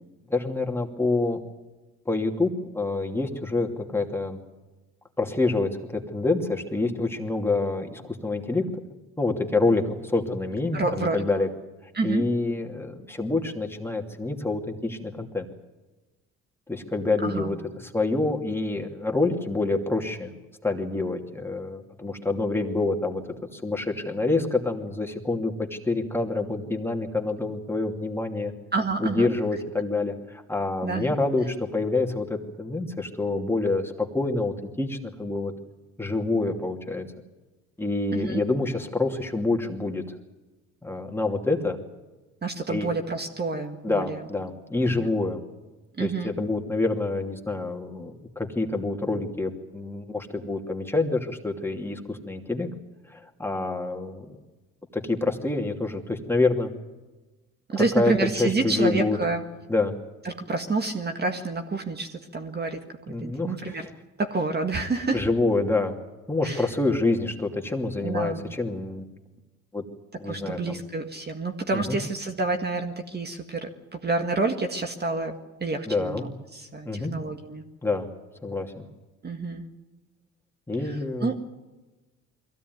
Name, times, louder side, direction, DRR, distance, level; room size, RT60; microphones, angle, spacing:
voice 1, 0.3-1.4 2.1-4.4 5.2-8.6 9.2-11.5 12.0-15.5 16.7-17.6 17.8-20.3 20.6-23.2 23.5-28.5 29.0-35.5 36.0-37.0 37.8-40.2 40.8-41.8 42.7-42.9 43.8-45.4 46.0-52.7 53.1-54.4 54.9-56.7 57.8-58.1 58.4-59.2 59.7-59.9 63.1-63.9 65.1-66.0 66.3-69.1 69.7-69.8 70.2-70.8 71.7-72.0 75.9-76.2 76.9-77.1 77.8-78.1 78.4-78.9 80.7-81.3, left 3 dB, 10° left, 2 dB, 2.8 m, -27 dB
voice 2, 10.7-11.2 11.9-12.3 17.2-17.5 28.7-29.3 30.8-31.1 38.1-38.4 42.4-44.3 44.9-45.1 46.0-46.3 57.7-59.4 60.2-63.9 64.2-65.2 66.4-66.7 68.0-68.5 70.3-77.6 79.2-79.7 80.8-81.4, right 3 dB, 35° right, 5 dB, 1.9 m, -29 dB
22.5 x 16.0 x 9.5 m, 1.2 s
cardioid pair, 90°, 30 cm